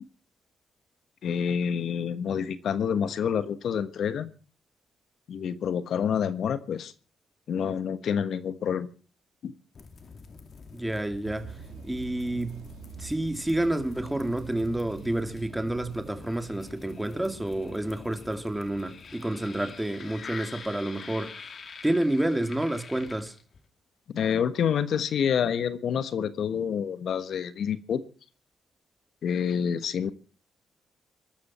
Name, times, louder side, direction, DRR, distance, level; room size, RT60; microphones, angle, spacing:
voice 1, 1.2-4.3 5.3-6.9 7.5-8.9 9.4-9.5 24.1-28.0 29.2-30.1, left 7 dB, 70° left, 1.3 m, -28 dB
sound 1, 9.7-23.6, left 5 dB, 55° left, 2.3 m, -46 dB
voice 2, 10.7-11.6 11.8-12.6 13.0-21.5 21.8-23.3, right 1 dB, 10° right, 2.5 m, -29 dB
sound 2, 11.2-16.3, right 11 dB, 85° right, 1.1 m, -46 dB
23.0 x 12.5 x 4.4 m
supercardioid pair, 60°, 0 cm